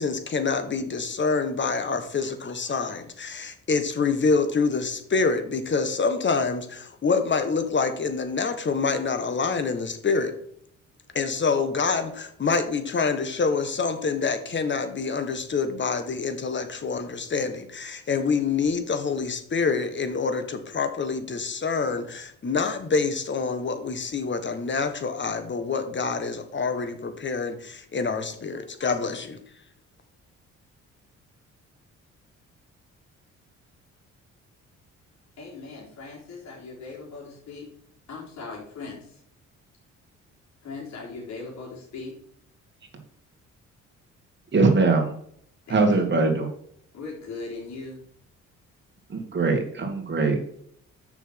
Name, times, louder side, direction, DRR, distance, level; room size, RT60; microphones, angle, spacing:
voice 1, 0.0-10.3 11.1-29.4, left 4 dB, 40° left, 9 dB, 1.6 m, -26 dB
voice 2, 35.4-37.7 38.1-39.2 40.6-42.2 45.7-46.1 46.9-48.0, left 3 dB, 65° left, -4 dB, 4.1 m, -39 dB
voice 3, 44.5-45.1 45.7-46.5 49.1-50.5, right 3 dB, 35° right, 3 dB, 2.3 m, -21 dB
6.9 x 6.1 x 6.1 m, 0.67 s
cardioid pair, 90°, 30 cm